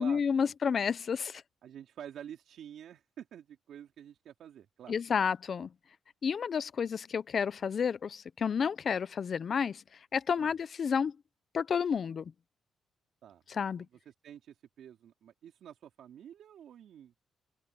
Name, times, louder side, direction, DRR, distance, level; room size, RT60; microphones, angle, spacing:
voice 1, 0.0-1.4 4.9-5.7 6.2-9.8 10.1-11.2 11.5-12.3 13.5-13.8, left 6 dB, 50° left, 0.8 m, -30 dB
voice 2, 1.6-5.0 10.4-10.6 13.2-17.1, right 9 dB, 75° right, 3.6 m, -49 dB
cardioid pair, 80°, 0 cm